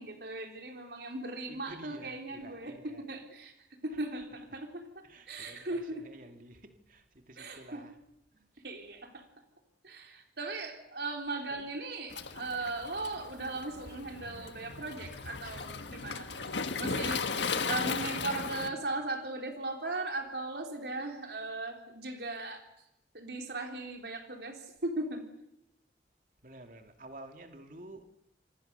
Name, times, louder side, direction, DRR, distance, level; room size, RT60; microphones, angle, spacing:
voice 1, 0.0-6.1 7.4-7.8 8.6-9.3 9.8-22.6 23.1-25.2, right 2 dB, 65° right, 3 dB, 3.8 m, -38 dB
voice 2, 1.5-3.0 3.9-4.0 5.0-8.0 8.3-8.6 11.5-11.7 18.5-18.8 26.4-28.1, right 1 dB, 45° right, 5 dB, 2.6 m, -51 dB
Waves surf, 12.1-18.7, left 5 dB, 85° left, 1.7 m, -36 dB
28.5 x 25.0 x 6.9 m, 0.84 s
head